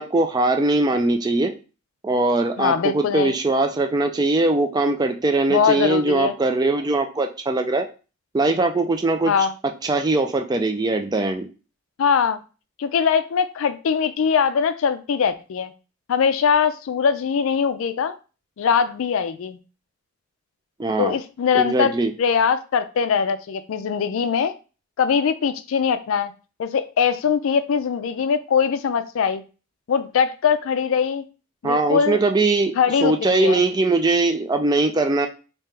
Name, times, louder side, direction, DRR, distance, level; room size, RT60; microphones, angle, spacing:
voice 1, 0.0-1.5 2.0-7.9 8.3-9.3 9.6-11.5 20.8-21.2 21.5-22.1 31.6-32.7 33.0-35.3, right 2 dB, 20° right, 6 dB, 0.3 m, -21 dB
voice 2, 2.6-3.3 5.5-6.3 9.3-9.5 12.0-12.4 12.8-15.7 16.1-18.2 18.6-19.6 21.0-21.9 22.2-24.5 25.0-26.3 26.6-29.4 29.9-31.2 31.6-32.2 32.8-33.6, left 6 dB, 70° left, 11 dB, 0.4 m, -21 dB
3.4 x 2.8 x 3.2 m, 0.34 s
head